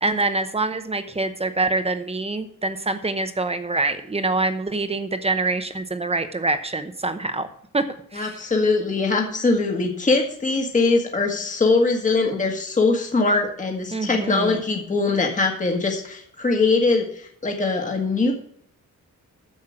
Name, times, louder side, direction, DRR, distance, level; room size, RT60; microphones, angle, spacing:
voice 1, 0.0-7.5 7.7-7.8 8.1-8.4 13.9-14.6, right 3 dB, 20° right, 9 dB, 0.8 m, -25 dB
voice 2, 8.1-18.3, left 3 dB, 25° left, 2 dB, 1.5 m, -22 dB
9.9 x 7.4 x 6.2 m, 0.66 s
wide cardioid pair, 170°, 32 cm